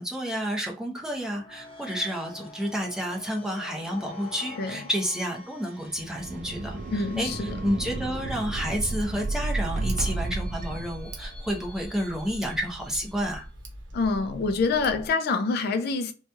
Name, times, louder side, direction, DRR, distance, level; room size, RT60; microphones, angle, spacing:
voice 1, 0.0-13.5, equal, 5° right, 0.7 m, -30 dB
sound 1, 0.9-13.5, left 3 dB, 30° left, 0.9 m, -48 dB
sound 2, 5.9-11.5, right 2 dB, 45° right, 0.3 m, -32 dB
voice 2, 6.9-7.6 13.9-16.1, left 4 dB, 55° left, 0.3 m, -26 dB
Tick, 9.0-15.1, equal, 80° right, 0.7 m, -43 dB
2.9 x 2.3 x 2.6 m
head